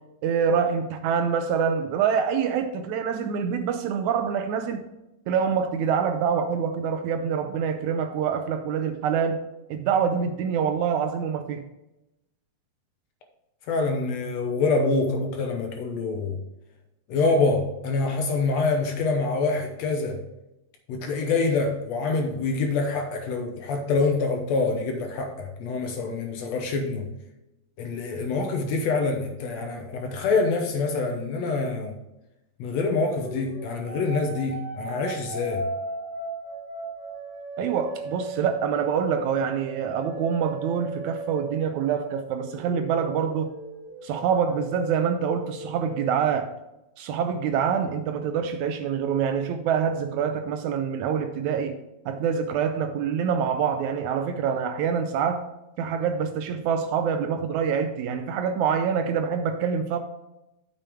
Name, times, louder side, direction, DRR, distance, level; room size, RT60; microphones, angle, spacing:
voice 1, 0.2-4.8 5.3-9.4 9.7-11.6 37.6-43.5 44.0-46.5 47.0-51.7 52.0-55.5 55.8-60.0, right 7 dB, 85° right, 1.7 m, -26 dB
voice 2, 13.7-16.4 17.1-20.2 20.9-27.1 27.8-32.0 32.6-35.6, left 3 dB, 70° left, 1.7 m, -26 dB
sound 1, 33.1-42.2 42.5-46.1, right 2 dB, 5° right, 2.3 m, -37 dB
8.9 x 6.8 x 3.5 m
omnidirectional pair, 4.0 m